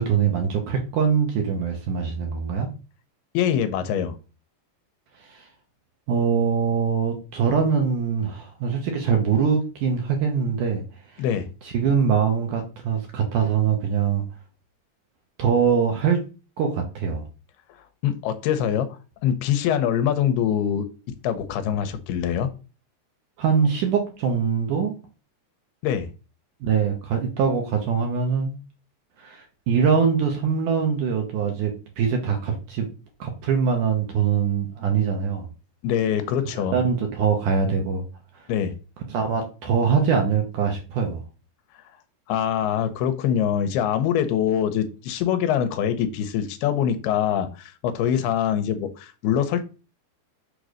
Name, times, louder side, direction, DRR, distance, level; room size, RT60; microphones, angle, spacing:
voice 1, 0.0-2.7 5.2-5.5 6.1-10.8 11.1-11.2 11.6-14.2 15.4-16.2 16.6-17.2 23.4-24.9 26.6-28.5 29.2-32.9 33.2-35.5 36.6-38.0 38.4-38.5 39.1-41.2, right 6 dB, 65° right, 3 dB, 2.2 m, -23 dB
voice 2, 3.3-4.2 11.2-11.5 18.0-19.0 19.2-20.9 21.2-22.5 25.8-26.1 35.8-36.8 38.5-38.8 42.3-49.6, left 9 dB, 80° left, 9 dB, 2.7 m, -24 dB
6.8 x 3.9 x 6.3 m, 0.33 s
omnidirectional pair, 4.7 m